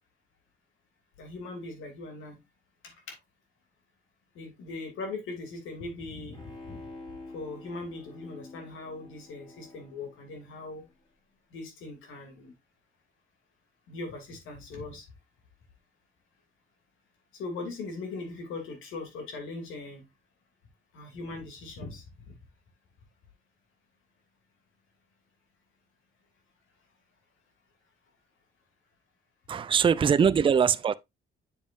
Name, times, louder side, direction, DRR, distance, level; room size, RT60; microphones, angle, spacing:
voice 1, 1.2-2.4 4.3-6.8 7.3-10.8 11.5-12.5 13.9-15.0 17.4-20.0 20.9-22.0, left 3 dB, 85° left, 2.7 m, -40 dB
Bowed string instrument, 6.3-10.9 11.3-11.4, left 2 dB, 25° left, 4.8 m, -48 dB
voice 2, 29.5-30.9, right 7 dB, 25° right, 0.4 m, -22 dB
7.2 x 7.2 x 2.5 m
cardioid pair, 90°, 20 cm